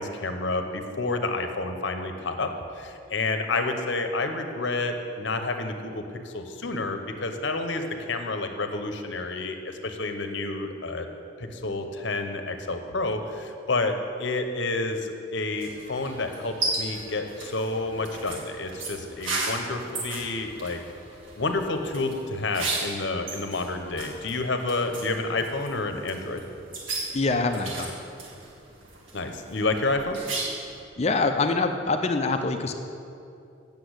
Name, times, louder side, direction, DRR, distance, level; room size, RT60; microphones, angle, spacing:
voice 1, 0.0-2.5 2.7-11.1 11.4-20.8 21.4-26.4 29.1-30.2, left 3 dB, 60° left, 6 dB, 0.8 m, -29 dB
sound 1, 15.6-30.8, right 2 dB, 70° right, 1.8 m, -36 dB
voice 2, 27.1-27.9 31.0-32.7, left 3 dB, 30° left, 6 dB, 0.5 m, -25 dB
8.2 x 6.9 x 8.0 m, 2.6 s
head